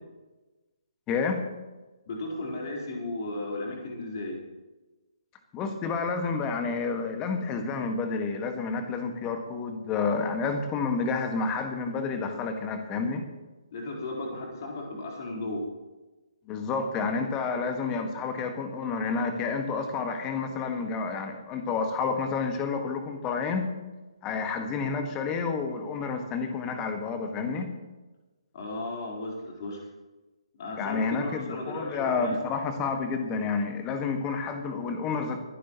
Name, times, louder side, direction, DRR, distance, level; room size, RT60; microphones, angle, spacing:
voice 1, 1.1-1.5 5.5-13.2 16.5-23.7 24.2-27.7 30.8-35.4, left 4 dB, 20° left, 6 dB, 1.6 m, -30 dB
voice 2, 2.1-4.4 13.7-15.6 28.5-29.8 30.6-32.4, left 2 dB, 40° left, -1 dB, 4.0 m, -35 dB
24.5 x 11.5 x 3.0 m, 1.2 s
figure-of-eight pair, 135°, 3 cm